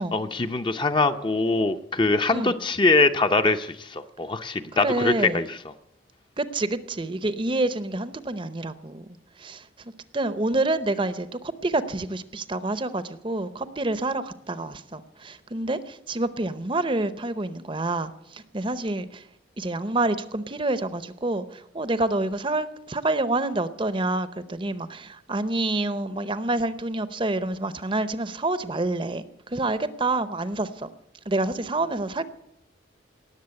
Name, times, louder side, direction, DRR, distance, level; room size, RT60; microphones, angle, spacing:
voice 1, 0.0-5.7, left 3 dB, 25° left, 8 dB, 0.7 m, -23 dB
voice 2, 4.8-5.4 6.4-9.7 10.1-19.2 19.6-30.9 31.3-32.2, right 2 dB, 25° right, 13 dB, 0.7 m, -28 dB
18.5 x 7.3 x 9.7 m, 0.80 s
head